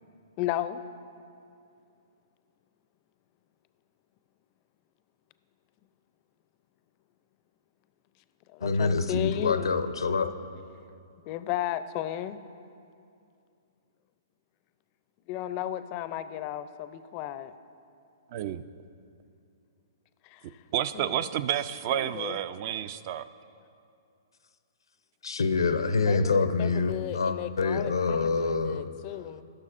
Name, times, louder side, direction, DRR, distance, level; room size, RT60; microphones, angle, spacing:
voice 1, 0.4-0.8 8.5-9.8 11.3-12.4 15.3-17.5 20.2-20.6 20.9-21.3 21.9-22.4 26.1-29.4, left 13 dB, 35° left, 0.4 m, -34 dB
voice 2, 8.6-10.3 25.2-28.8, left 4 dB, 85° left, 0.5 m, -26 dB
voice 3, 18.3-18.6 20.7-23.3, right 10 dB, 45° right, 0.3 m, -30 dB
16.5 x 6.4 x 2.5 m
hypercardioid pair, 130°, 2 cm